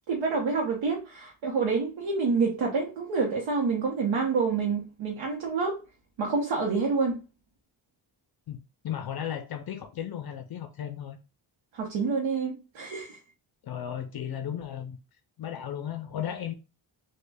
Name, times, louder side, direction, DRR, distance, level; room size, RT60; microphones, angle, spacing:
voice 1, 0.1-5.8 6.2-7.2 11.7-13.2, right 4 dB, 75° right, 0.8 m, -27 dB
voice 2, 8.8-11.2 13.6-15.0 15.4-16.5, left 9 dB, 55° left, 0.5 m, -35 dB
3.1 x 2.2 x 3.3 m
cardioid pair, 75°, 46 cm